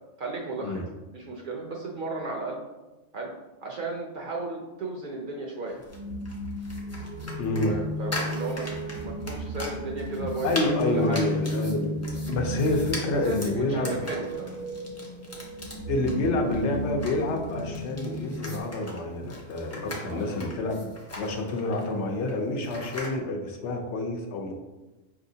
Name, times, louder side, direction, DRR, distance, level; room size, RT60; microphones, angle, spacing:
voice 1, 0.2-0.9 1.1-2.6 3.1-3.3 3.6-5.8 7.6-8.7 9.0-11.2 12.7-14.5 20.1-20.4, right 3 dB, 55° right, 0 dB, 0.6 m, -34 dB
sound 1, 5.7-23.2, left 1 dB, 20° left, 0.5 m, -41 dB
sound 2, 5.9-18.6, equal, 80° right, 1.1 m, -34 dB
voice 2, 7.4-7.8 10.4-12.0 12.3-14.0 15.9-20.9 21.2-24.5, left 2 dB, 70° left, 2 dB, 0.9 m, -28 dB
5.3 x 2.8 x 2.7 m, 1.1 s
omnidirectional pair, 1.2 m